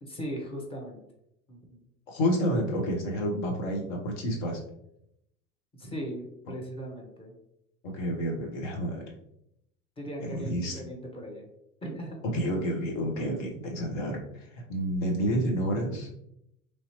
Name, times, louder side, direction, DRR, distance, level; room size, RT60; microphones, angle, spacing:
voice 1, 0.0-1.0 1.5-1.8 5.7-7.4 10.0-11.5 11.8-12.2, equal, 15° left, 0 dB, 0.8 m, -38 dB
voice 2, 2.1-4.6 7.9-9.1 10.2-10.8 12.3-16.1, equal, 55° left, 1 dB, 1.0 m, -29 dB
3.2 x 2.7 x 2.8 m, 0.79 s
figure-of-eight pair, 75°, 43 cm